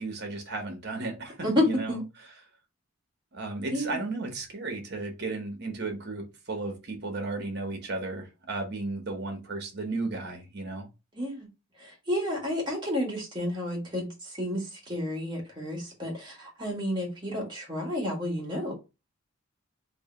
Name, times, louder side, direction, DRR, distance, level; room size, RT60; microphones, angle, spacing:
voice 1, 0.0-1.9 3.3-10.9, right 3 dB, 50° right, 1.2 m, -34 dB
voice 2, 1.4-2.0 3.7-4.0 11.1-11.5 11.8-18.7, left 1 dB, 20° right, 1.6 m, -30 dB
3.2 x 2.9 x 4.2 m
head